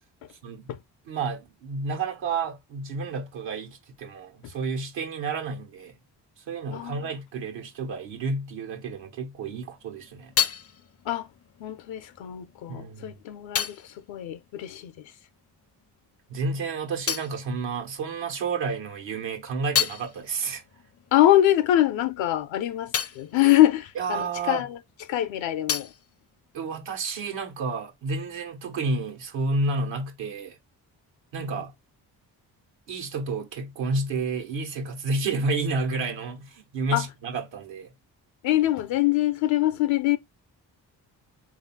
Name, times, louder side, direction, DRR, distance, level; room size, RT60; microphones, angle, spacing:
voice 1, 1.1-6.0 6.4-10.3 12.7-13.2 16.3-20.6 24.0-24.6 26.5-30.6 31.3-31.7 32.9-37.9, right 3 dB, 85° right, 1.2 m, -30 dB
voice 2, 6.7-7.1 11.0-11.3 11.6-15.0 21.1-24.8 25.1-25.9 31.4-31.5 36.9-37.1 38.4-40.2, left 14 dB, 80° left, 0.7 m, -24 dB
sound 1, 9.5-15.5 15.8-18.5 18.9-24.9 25.2-27.2, left 8 dB, 35° left, 0.4 m, -34 dB
3.6 x 2.7 x 4.2 m
supercardioid pair, 45°, 45 cm